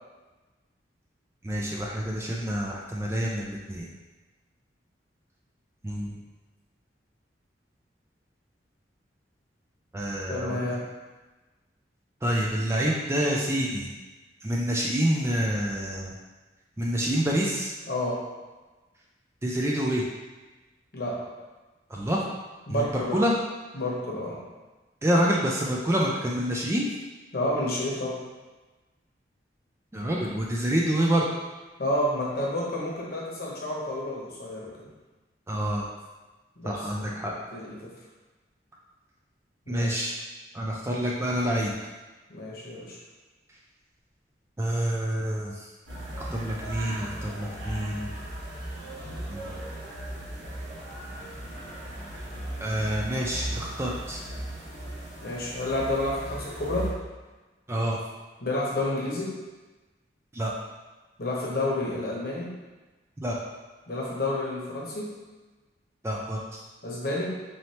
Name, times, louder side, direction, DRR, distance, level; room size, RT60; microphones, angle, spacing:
voice 1, 1.4-3.9 5.8-6.2 9.9-10.7 12.2-13.9 14.4-16.1 16.8-17.7 19.4-20.0 21.9-22.2 22.7-22.8 23.1-23.3 25.0-26.9 29.9-31.3 35.5-35.9 36.6-37.3 39.7-40.1 40.5-41.7 44.6-45.5 46.3-48.1 49.3-49.6 52.6-54.2 57.7-58.0 60.3-60.5 63.2-63.4 66.0-66.4, equal, 15° right, -3 dB, 0.3 m, -27 dB
voice 2, 10.3-10.8 17.9-18.2 20.9-21.2 22.7-23.2 23.7-24.4 27.3-28.1 31.8-34.9 36.6-37.1 37.5-37.8 39.7-40.1 42.3-43.0 55.2-56.9 58.4-59.3 61.2-62.5 63.9-65.1 66.8-67.4, left 1 dB, 55° left, -4 dB, 1.0 m, -30 dB
sound 1, 45.9-56.9, right 1 dB, 80° right, 1.5 m, -37 dB
4.2 x 3.1 x 2.9 m, 1.2 s
head